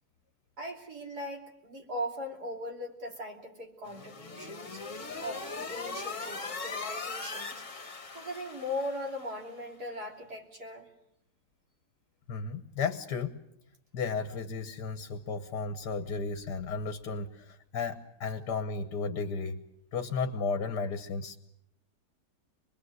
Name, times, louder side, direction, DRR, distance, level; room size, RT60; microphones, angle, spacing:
voice 1, 0.6-4.8 5.2-7.6 8.1-10.9, left 1 dB, 65° right, 2 dB, 3.7 m, -39 dB
sound 1, 3.8-9.4, left 4 dB, 50° left, 2.2 m, -40 dB
voice 2, 12.3-13.4 13.9-19.6 19.9-21.4, left 4 dB, 75° left, 8 dB, 1.8 m, -34 dB
26.0 x 21.5 x 8.0 m, 0.76 s
omnidirectional pair, 1.8 m